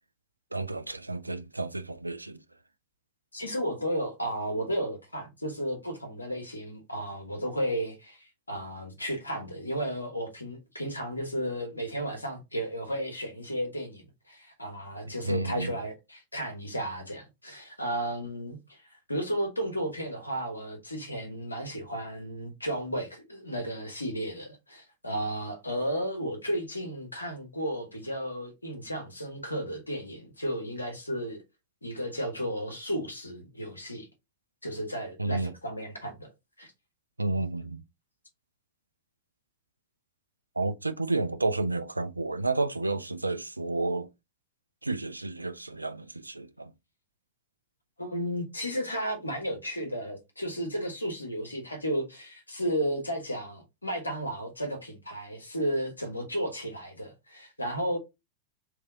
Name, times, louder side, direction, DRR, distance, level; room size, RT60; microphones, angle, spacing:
voice 1, 0.5-2.4 15.2-15.7 35.2-35.5 37.2-37.8 40.6-44.1 44.8-46.7, right 2 dB, 85° right, 0.4 m, -31 dB
voice 2, 3.3-18.8 19.1-31.4 31.8-34.1 34.6-36.3 36.6-36.7 48.0-58.0, equal, 85° left, 1.3 m, -33 dB
3.4 x 3.2 x 3.7 m
figure-of-eight pair, 90°, 0 cm